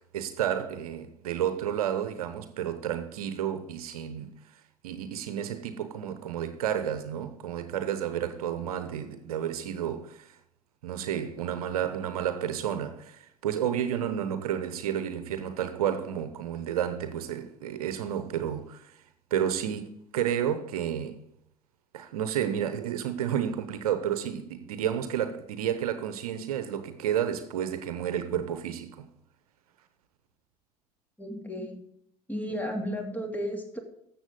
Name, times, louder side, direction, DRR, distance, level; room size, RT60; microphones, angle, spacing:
voice 1, 0.1-4.3 4.8-10.3 10.8-18.9 19.3-19.9 20.1-21.2 21.9-29.1, right 9 dB, 75° right, 0.9 m, -31 dB
voice 2, 31.2-31.8 32.3-33.8, equal, 10° left, 2.6 m, -33 dB
13.5 x 7.5 x 3.8 m
figure-of-eight pair, 65°, 19 cm